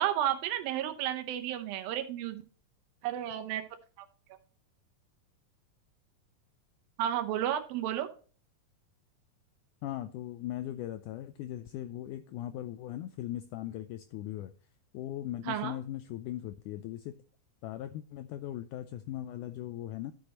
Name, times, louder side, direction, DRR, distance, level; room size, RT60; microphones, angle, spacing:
voice 1, 0.0-2.4 3.0-3.6 4.0-4.1 7.0-8.1 15.5-15.7, right 11 dB, 80° right, 7 dB, 2.7 m, -32 dB
voice 2, 9.8-14.5 14.9-17.1 17.6-20.1, left 13 dB, 90° left, 9 dB, 1.7 m, -39 dB
13.0 x 6.4 x 2.9 m, 0.40 s
omnidirectional pair, 4.2 m